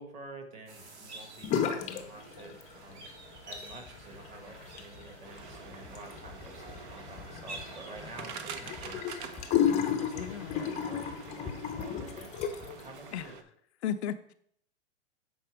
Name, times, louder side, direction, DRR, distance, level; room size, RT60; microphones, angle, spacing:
voice 1, 0.0-9.2 9.7-13.4, right 2 dB, 20° right, 1.4 m, -49 dB
sound 1, 0.7-13.2, right 2 dB, 70° right, 1.9 m, -51 dB
Emptying the sink, 1.4-2.0 2.3-3.0 3.4-12.8, left 8 dB, 20° left, 0.6 m, -34 dB
sound 2, 5.2-13.4, right 7 dB, 45° right, 0.7 m, -47 dB
voice 2, 10.2-10.6 13.1-13.2 13.8-14.3, left 9 dB, 65° left, 0.5 m, -34 dB
6.8 x 4.2 x 4.7 m
hypercardioid pair, 130°, 35 cm